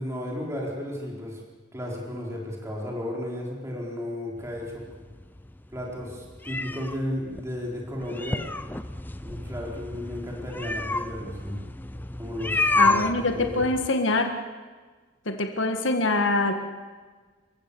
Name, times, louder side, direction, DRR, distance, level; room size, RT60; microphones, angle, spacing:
voice 1, 0.0-1.4 1.7-4.8 5.7-8.4 9.2-11.6 12.2-13.0 13.3-13.7, left 1 dB, 15° right, -2 dB, 4.4 m, -34 dB
sound 1, 4.4-13.9, left 2 dB, 10° left, 0.6 m, -30 dB
voice 2, 12.8-14.3 15.3-16.5, left 2 dB, 70° left, 5 dB, 1.7 m, -24 dB
29.5 x 15.5 x 7.1 m, 1.4 s
head